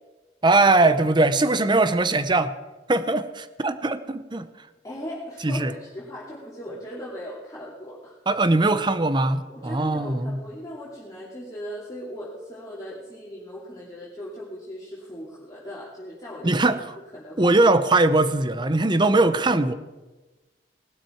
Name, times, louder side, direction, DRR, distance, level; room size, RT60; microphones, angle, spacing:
voice 1, 0.4-2.5 2.9-4.5 5.4-5.7 8.3-10.4 16.4-16.9 17.4-19.7, right 2 dB, 25° right, 12 dB, 0.8 m, -21 dB
voice 2, 4.8-8.2 9.5-16.6 17.1-17.5, equal, 20° left, -6 dB, 2.7 m, -38 dB
19.0 x 12.0 x 4.6 m, 1.2 s
head